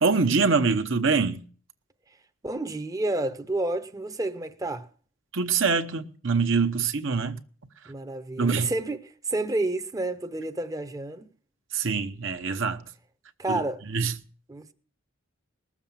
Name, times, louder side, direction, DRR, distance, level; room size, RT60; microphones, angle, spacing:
voice 1, 0.0-1.4 5.3-7.4 8.4-8.7 11.7-12.8 13.5-13.6 13.9-14.1, right 4 dB, 70° right, 1.0 m, -24 dB
voice 2, 2.4-4.9 7.9-11.2 13.4-13.8 14.5-14.7, right 2 dB, 15° right, 0.7 m, -30 dB
19.0 x 7.3 x 7.2 m
head